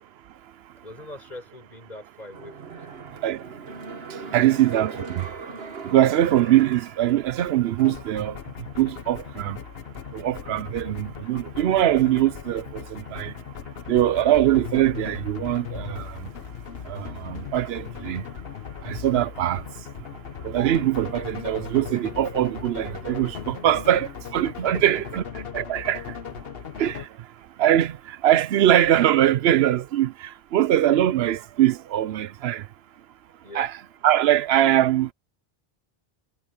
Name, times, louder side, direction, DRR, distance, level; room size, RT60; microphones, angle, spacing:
voice 1, 0.8-3.1 4.2-4.6 24.7-25.0 33.4-33.7, left 1 dB, 40° left, 7.1 m, -43 dB
sound 1, 2.3-7.8 8.2-8.3, right 4 dB, 75° right, 1.6 m, -39 dB
voice 2, 4.1-5.3 5.8-8.4 8.8-9.6 10.1-13.3 13.9-16.3 16.8-18.2 18.8-19.6 20.4-25.2 25.5-26.2 26.8-27.1 27.6-32.7 33.5-33.8 34.0-35.1, right 12 dB, 90° right, 0.9 m, -22 dB
sound 2, 7.8-27.1, left 8 dB, 70° left, 1.1 m, -38 dB
omnidirectional pair, 1.0 m